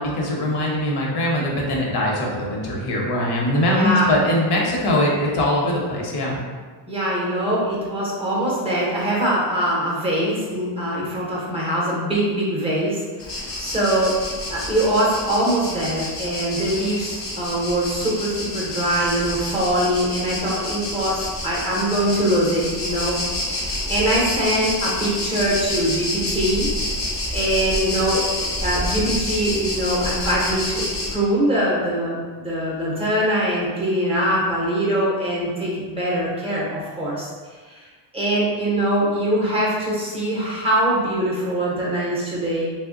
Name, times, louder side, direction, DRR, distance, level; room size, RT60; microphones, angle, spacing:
voice 1, 0.0-6.4, left 1 dB, 65° left, -2 dB, 0.9 m, -22 dB
voice 2, 3.6-4.1 6.9-14.2 14.5-26.7 27.3-37.8 38.1-42.7, right 1 dB, 15° right, -6 dB, 0.5 m, -23 dB
sound 1, 13.2-31.2, left 1 dB, 35° left, 0.6 m, -28 dB
3.1 x 2.1 x 3.6 m, 1.5 s
cardioid pair, 175°, 42 cm